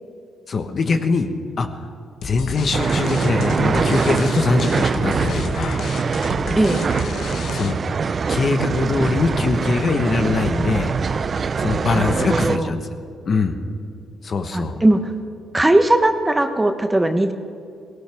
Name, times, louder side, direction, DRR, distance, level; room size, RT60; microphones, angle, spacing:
voice 1, 0.5-1.3 1.6-1.7 2.2-5.8 7.5-7.8 8.3-10.9 11.6-12.8 13.3-13.6 14.2-14.8, left 4 dB, 45° left, 7 dB, 1.2 m, -22 dB
sound 1, 2.2-8.0, left 5 dB, 65° left, 1.2 m, -32 dB
sound 2, 2.7-12.6, right 5 dB, 40° right, 0.4 m, -23 dB
voice 2, 12.0-12.7 14.5-15.1 15.5-17.3, right 1 dB, 15° right, 7 dB, 1.0 m, -18 dB
18.0 x 17.5 x 3.5 m, 2.3 s
cardioid pair, 90°, 0 cm